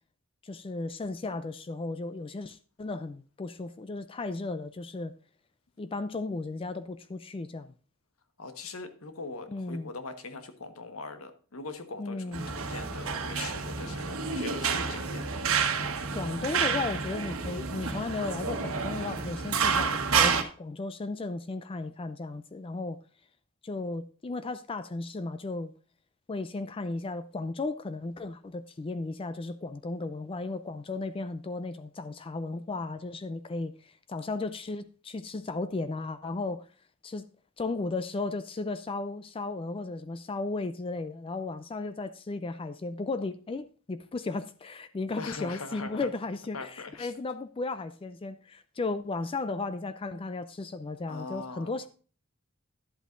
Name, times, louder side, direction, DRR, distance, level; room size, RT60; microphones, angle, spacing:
voice 1, 0.4-5.1 5.8-7.7 9.5-9.9 12.0-12.5 16.1-23.0 23.6-25.7 26.3-36.7 37.0-37.3 37.6-51.9, left 3 dB, 25° left, 0.4 m, -35 dB
voice 2, 8.4-15.4 45.2-46.1 46.5-47.1 51.1-51.7, left 3 dB, 90° left, 1.3 m, -41 dB
sound 1, 12.3-20.4, right 5 dB, 80° right, 1.3 m, -29 dB
11.0 x 8.2 x 2.5 m
head